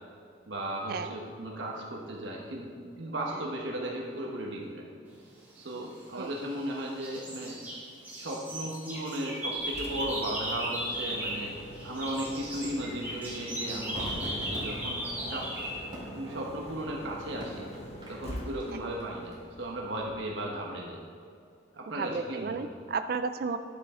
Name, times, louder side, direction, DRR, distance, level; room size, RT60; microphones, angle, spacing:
voice 1, 0.5-4.9 5.5-7.6 8.2-11.5 11.8-15.6 16.1-17.7 18.1-21.0 21.7-22.6, right 1 dB, 75° right, -1 dB, 1.1 m, -36 dB
sound 1, 5.9-6.7 7.0-11.5 11.8-15.8, right 1 dB, 10° right, 2.4 m, -36 dB
Engine, 9.6-20.5, equal, 35° left, 0.8 m, -45 dB
Crowd / Fireworks, 13.9-19.3 19.6-19.7, equal, 25° right, 2.3 m, -43 dB
voice 2, 21.9-23.6, right 5 dB, 50° right, 9 dB, 0.3 m, -33 dB
11.0 x 7.3 x 3.7 m, 2.4 s
head